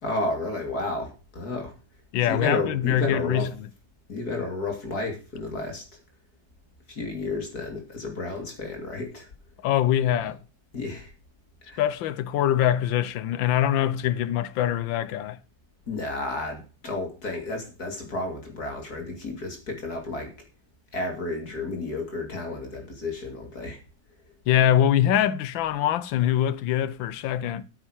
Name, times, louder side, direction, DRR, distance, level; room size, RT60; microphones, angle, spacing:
voice 1, 0.0-1.7 2.3-3.5 4.1-6.0 6.9-9.3 10.2-10.3 10.7-11.1 11.6-11.8 15.9-20.3 20.9-23.8, left 2 dB, 50° left, 3.3 m, -31 dB
voice 2, 2.1-3.5 9.6-10.4 11.8-15.4 24.5-27.6, left 11 dB, 90° left, 1.5 m, -23 dB
9.0 x 8.9 x 6.3 m
omnidirectional pair, 2.1 m